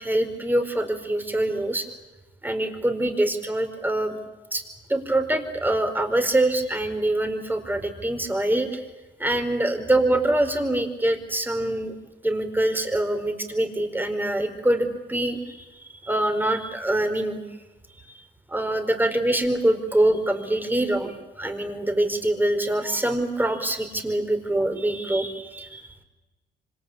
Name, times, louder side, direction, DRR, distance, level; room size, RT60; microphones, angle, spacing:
voice 1, 0.0-1.9 2.4-4.2 4.5-4.6 4.9-8.8 9.2-11.9 12.2-15.7 16.0-17.4 18.5-26.0, right 1 dB, 10° right, 6 dB, 4.4 m, -24 dB
26.5 x 26.0 x 8.5 m, 1.1 s
cardioid pair, 90°, 20 cm